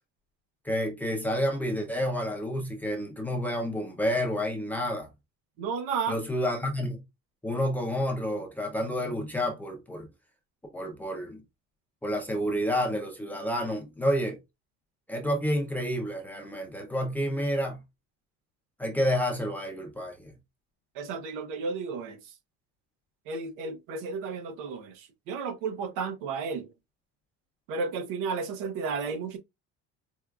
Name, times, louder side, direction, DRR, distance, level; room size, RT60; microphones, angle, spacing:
voice 1, 0.6-5.1 6.1-7.0 7.4-10.1 10.7-11.4 12.0-14.4 15.1-17.8 18.8-20.3, equal, 5° left, 0.4 m, -29 dB
voice 2, 5.6-6.2 20.9-22.2 23.3-26.7 27.7-29.4, right 5 dB, 80° right, 0.9 m, -33 dB
4.6 x 2.3 x 2.2 m
cardioid pair, 180°, 31 cm